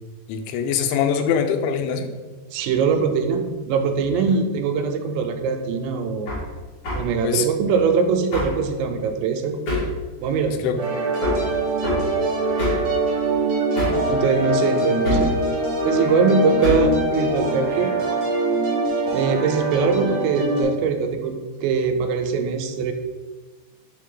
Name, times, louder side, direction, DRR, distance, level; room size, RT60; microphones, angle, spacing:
voice 1, 0.3-2.1 7.2-7.5 10.5-10.8, left 7 dB, 90° left, 6 dB, 2.9 m, -23 dB
voice 2, 2.5-6.3 7.0-9.6 10.2-10.6 14.1-15.3 15.8-18.0 19.1-22.9, right 5 dB, 85° right, 6 dB, 2.8 m, -22 dB
Hammer, 6.3-6.4 6.8-7.1 8.3-8.6 9.7-10.0 11.2-11.5 11.8-12.1 12.6-12.9 13.7-14.1 15.0-15.4 16.6-16.9, left 1 dB, 50° left, 1.7 m, -24 dB
sound 1, 10.8-20.6, right 2 dB, 55° right, 1.5 m, -23 dB
5.8 x 4.5 x 3.7 m, 1.3 s
omnidirectional pair, 5.2 m